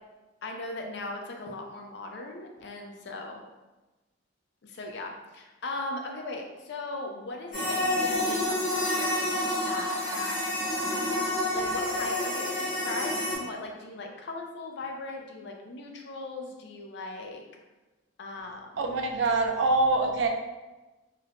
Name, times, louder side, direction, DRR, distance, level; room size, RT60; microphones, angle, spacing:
voice 1, 0.4-3.4 4.6-9.3 9.6-10.8 11.5-17.4 18.2-18.9, left 2 dB, 60° left, 2 dB, 0.4 m, -39 dB
sound 1, 7.5-13.3, left 1 dB, 45° left, 1.0 m, -28 dB
voice 2, 18.8-20.3, right 3 dB, 65° right, 3 dB, 0.3 m, -24 dB
3.1 x 2.0 x 2.5 m, 1.1 s
head